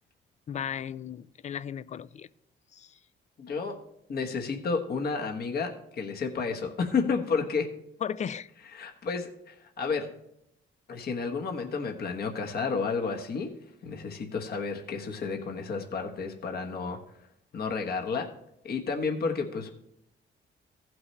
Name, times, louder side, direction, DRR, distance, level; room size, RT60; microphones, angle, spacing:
voice 1, 0.5-2.3 2.7-3.0 8.0-8.5, left 8 dB, 35° left, 0.4 m, -35 dB
voice 2, 3.4-3.8 4.1-7.7 8.7-10.1 10.9-17.0 17.5-18.3 18.6-19.7, left 5 dB, 50° left, 1.2 m, -31 dB
15.0 x 6.0 x 3.2 m
cardioid pair, 90°, 20 cm